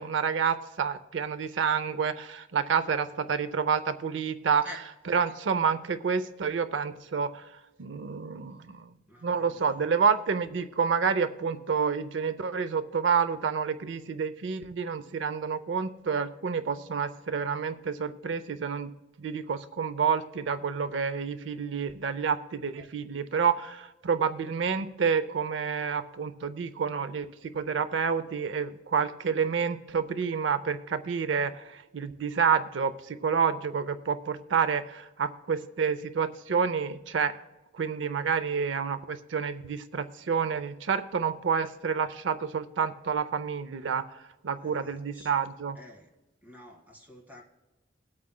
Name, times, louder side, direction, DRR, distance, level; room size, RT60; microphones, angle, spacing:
voice 1, 0.0-4.7 5.1-8.9 9.2-18.9 19.2-27.3 27.5-37.3 37.7-44.2 44.4-45.8, right 6 dB, 90° right, 13 dB, 0.5 m, -29 dB
voice 2, 9.1-9.8 22.8-22.9 44.6-45.3 45.7-46.1 46.4-47.4, left 1 dB, 10° right, -1 dB, 1.8 m, -48 dB
21.5 x 8.5 x 2.2 m, 1.1 s
head